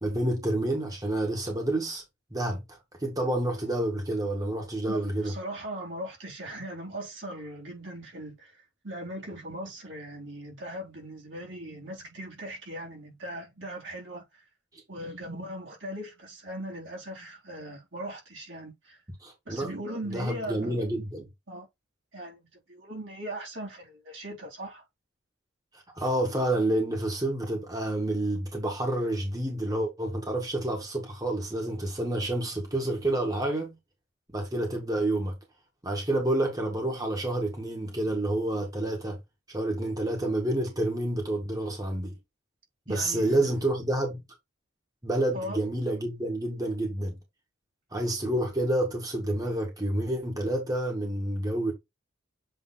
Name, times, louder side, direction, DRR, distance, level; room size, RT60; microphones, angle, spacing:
voice 1, 0.0-2.0 2.3-5.3 19.2-19.7 20.1-21.3 25.7-33.7 34.3-35.3 35.8-39.2 39.5-42.1 42.9-44.2 45.0-47.2 47.9-51.7, right 1 dB, 20° right, 1.8 m, -29 dB
voice 2, 4.9-8.6 8.8-14.4 14.9-19.0 19.5-20.9 21.5-21.7 22.1-24.8 42.9-43.5 45.3-45.6, right 1 dB, 80° right, 3.9 m, -39 dB
7.9 x 3.4 x 4.1 m
head